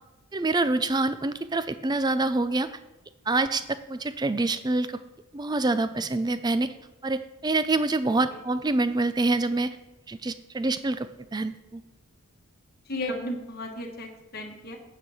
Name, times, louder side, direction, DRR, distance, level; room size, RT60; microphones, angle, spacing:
voice 1, 0.3-2.7 3.3-5.0 5.3-6.7 7.0-9.8 10.1-11.8, right 2 dB, 20° right, 12 dB, 0.4 m, -26 dB
voice 2, 12.9-14.8, left 1 dB, 45° left, 2 dB, 1.3 m, -34 dB
9.2 x 6.1 x 5.5 m, 1.1 s
head